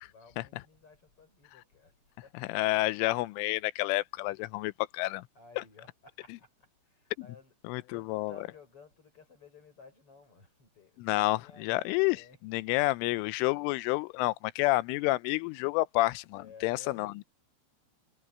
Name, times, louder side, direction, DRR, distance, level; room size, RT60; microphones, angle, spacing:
voice 1, 0.0-1.9 2.2-2.9 5.3-6.5 6.8-12.4 16.3-17.2, left 5 dB, 30° left, 6.4 m, -56 dB
voice 2, 2.5-5.2 5.6-5.7 7.6-8.3 11.0-17.2, left 20 dB, 85° left, 3.1 m, -29 dB
omnidirectional pair, 5.6 m